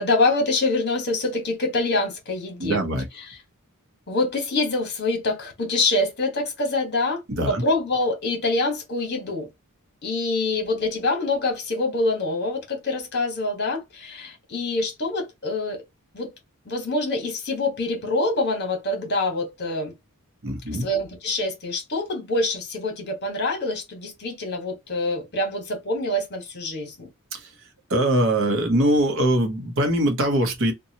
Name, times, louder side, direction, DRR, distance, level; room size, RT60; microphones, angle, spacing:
voice 1, 0.0-2.8 3.2-3.3 4.1-7.2 7.5-9.5 10.0-15.8 16.1-16.3 16.6-19.9 20.7-27.1, left 2 dB, 50° left, 1.3 m, -25 dB
voice 2, 2.6-3.1 7.3-7.6 20.4-20.9 27.3-27.5 27.9-30.7, right 1 dB, 60° right, 0.8 m, -22 dB
2.7 x 2.3 x 2.8 m
head